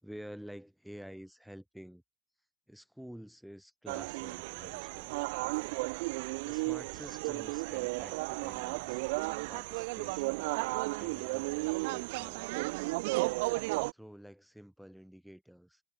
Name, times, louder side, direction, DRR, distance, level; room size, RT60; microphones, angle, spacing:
voice 1, 0.0-2.0 2.7-5.1 6.4-9.0 9.5-10.5 11.0-12.7 13.9-15.8, equal, ahead, 3.8 m, -50 dB
sound 1, 3.9-13.9, right 25 dB, 50° right, 0.7 m, -34 dB
figure-of-eight pair, 90°, 0 cm